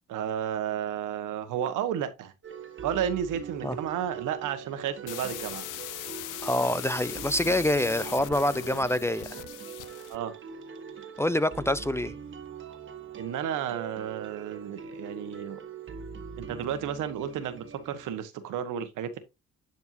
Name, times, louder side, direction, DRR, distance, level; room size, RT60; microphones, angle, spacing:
voice 1, 0.1-2.3 2.8-5.6 10.1-10.3 13.2-15.6 16.4-19.2, right 9 dB, 90° right, 1.3 m, -32 dB
sound 1, 2.4-18.2, right 6 dB, 40° right, 1.4 m, -42 dB
sound 2, 5.1-10.2, left 15 dB, 90° left, 0.6 m, -40 dB
voice 2, 6.4-9.3 11.2-12.1, left 1 dB, 10° left, 0.4 m, -26 dB
10.5 x 4.4 x 2.7 m
cardioid pair, 90°, 30 cm